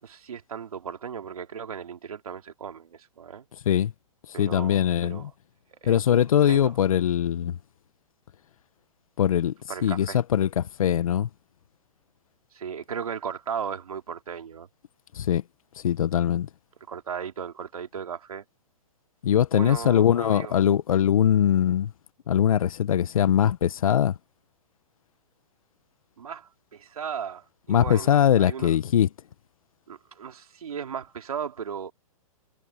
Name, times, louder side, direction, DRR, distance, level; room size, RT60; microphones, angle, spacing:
voice 1, 0.0-3.5 4.3-5.3 5.7-6.7 9.7-10.2 12.5-14.7 16.9-18.4 19.5-20.5 26.2-28.7 29.9-31.9, right 7 dB, 85° right, 3.6 m, -36 dB
voice 2, 4.4-5.3 5.8-7.6 9.2-9.5 9.8-11.3 15.1-15.4 15.8-16.5 19.2-21.9 22.3-24.2 27.7-29.1, left 9 dB, 75° left, 1.0 m, -22 dB
hypercardioid pair, 140°, 18 cm